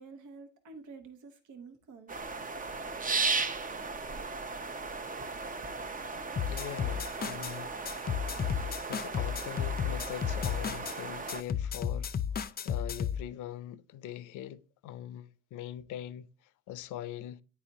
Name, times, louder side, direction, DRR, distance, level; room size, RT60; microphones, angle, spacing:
voice 1, 0.0-2.2, right 4 dB, 75° right, 1.1 m, -49 dB
sound 1, 2.1-11.4, right 4 dB, 25° right, 0.6 m, -36 dB
sound 2, 6.4-7.5 7.9-11.0 11.3-13.2, left 8 dB, 30° left, 0.5 m, -33 dB
voice 2, 6.5-7.8 8.4-16.3 16.7-17.4, left 11 dB, 80° left, 0.5 m, -42 dB
9.6 x 4.1 x 2.9 m
cardioid pair, 90°, 30 cm